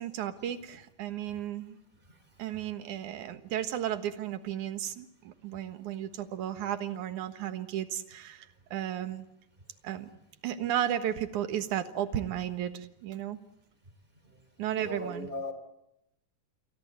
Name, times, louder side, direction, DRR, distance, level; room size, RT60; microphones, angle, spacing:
voice 1, 0.0-1.8 2.4-9.3 9.8-10.1 10.4-13.4 14.6-15.3, right 11 dB, 70° right, 9 dB, 2.8 m, -34 dB
voice 2, 14.8-15.5, left 2 dB, 15° right, 10 dB, 3.1 m, -39 dB
29.0 x 22.5 x 7.9 m, 0.85 s
omnidirectional pair, 3.8 m